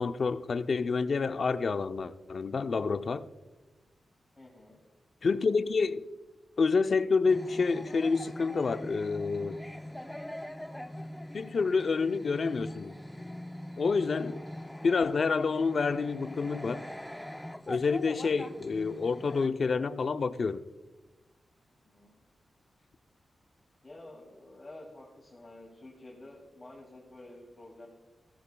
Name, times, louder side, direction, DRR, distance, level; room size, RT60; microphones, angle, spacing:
voice 1, 0.0-3.3 5.2-6.1 6.6-9.6 11.3-12.9 13.8-14.4 14.8-16.8 17.7-20.6, left 4 dB, 55° left, 0.5 m, -28 dB
voice 2, 4.3-4.8 21.8-22.1 23.8-27.9, left 1 dB, 25° left, 2.9 m, -50 dB
sound 1, 7.3-19.5, left 1 dB, 5° left, 0.5 m, -43 dB
15.5 x 15.0 x 2.3 m
wide cardioid pair, 95°, 0 cm